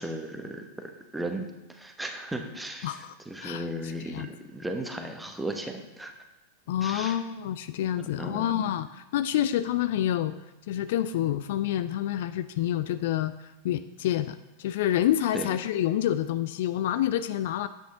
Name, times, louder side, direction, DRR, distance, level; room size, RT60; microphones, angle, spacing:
voice 1, 0.0-6.1 6.8-7.2 8.0-8.5 15.3-15.6, right 1 dB, 5° right, 4 dB, 1.0 m, -36 dB
voice 2, 2.8-3.1 3.4-3.7 4.0-4.3 6.7-10.3 10.7-17.7, left 11 dB, 55° left, 13 dB, 0.3 m, -28 dB
9.4 x 8.1 x 3.7 m, 1.0 s
figure-of-eight pair, 90°, 0 cm